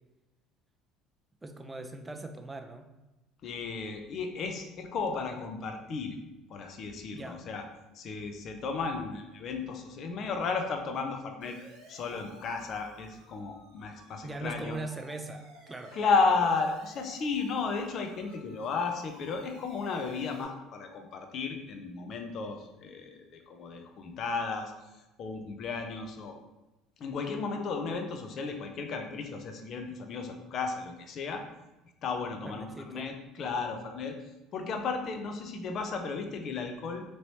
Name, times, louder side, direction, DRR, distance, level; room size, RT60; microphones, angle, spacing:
voice 1, 1.4-2.9 7.1-7.4 14.2-16.0 32.4-33.1, right 2 dB, 15° right, 6 dB, 0.4 m, -40 dB
voice 2, 3.4-6.2 6.5-7.7 7.9-11.6 11.9-14.8 15.9-24.7 25.2-26.3 27.0-31.4 32.0-34.1 34.5-37.0, left 4 dB, 50° left, 5 dB, 0.5 m, -33 dB
Siren, 11.4-20.4, right 2 dB, 85° right, 0.8 m, -54 dB
3.0 x 2.9 x 2.8 m, 1.0 s
hypercardioid pair, 75°, 0 cm